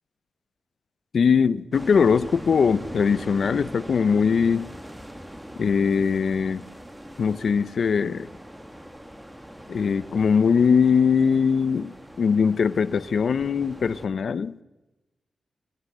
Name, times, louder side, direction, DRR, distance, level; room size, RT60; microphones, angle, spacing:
voice 1, 1.1-4.7 5.6-6.7 7.2-8.3 9.7-14.6, left 6 dB, 65° left, 18 dB, 0.7 m, -21 dB
sound 1, 1.7-14.1, equal, 5° right, 2.2 m, -41 dB
27.0 x 16.0 x 8.1 m, 1.1 s
wide cardioid pair, 140°, 0 cm